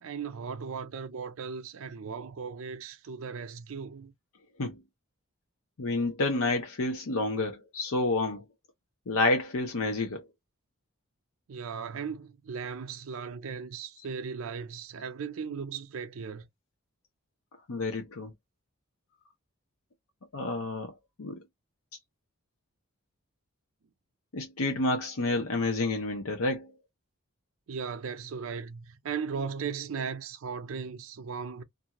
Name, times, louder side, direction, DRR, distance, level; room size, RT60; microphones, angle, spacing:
voice 1, 0.0-4.1 11.5-16.5 27.7-31.6, right 6 dB, 70° right, 0.5 m, -37 dB
voice 2, 5.8-8.4 9.1-10.2 17.7-18.3 20.3-20.9 21.2-21.4 24.3-26.7, left 2 dB, 80° left, 0.7 m, -29 dB
2.6 x 2.3 x 2.8 m
head